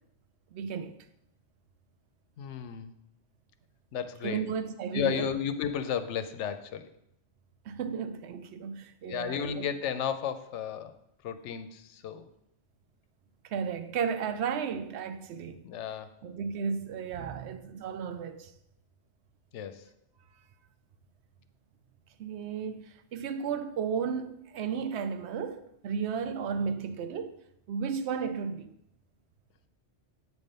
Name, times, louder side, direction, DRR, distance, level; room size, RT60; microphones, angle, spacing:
voice 1, 0.5-1.0 4.2-5.3 7.7-9.7 13.4-15.6 16.2-18.5 22.2-27.4 27.7-28.7, right 6 dB, 70° right, 0.8 m, -34 dB
voice 2, 2.4-2.9 3.9-4.4 4.9-6.9 9.1-11.0 11.2-12.3 15.6-16.1 19.5-19.8, left 8 dB, 80° left, 0.9 m, -33 dB
8.1 x 3.6 x 5.3 m
omnidirectional pair, 1.2 m